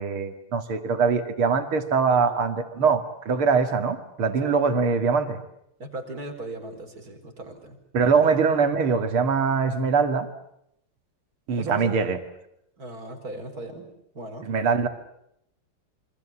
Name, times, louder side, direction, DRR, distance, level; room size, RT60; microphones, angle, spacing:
voice 1, 0.0-5.4 7.9-10.3 11.5-12.2 14.4-14.9, right 5 dB, 75° right, 8 dB, 3.0 m, -22 dB
voice 2, 2.1-2.4 4.4-4.6 5.8-7.8 11.5-11.9 12.8-13.9 14.1-14.5, right 2 dB, 40° right, 4 dB, 4.8 m, -37 dB
27.5 x 25.5 x 7.2 m, 0.75 s
omnidirectional pair, 2.4 m